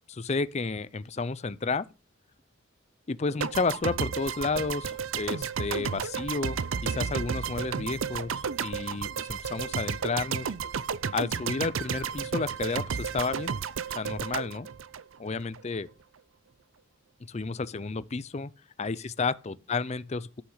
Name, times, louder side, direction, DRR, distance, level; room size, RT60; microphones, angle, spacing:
voice 1, 0.1-1.9 3.1-10.5 11.1-13.5 13.9-14.7 15.2-15.9 17.3-18.5 18.8-20.4, left 4 dB, 35° left, 0.5 m, -31 dB
sound 1, 3.4-15.6, right 6 dB, 75° right, 0.5 m, -32 dB
13.0 x 5.9 x 5.6 m
head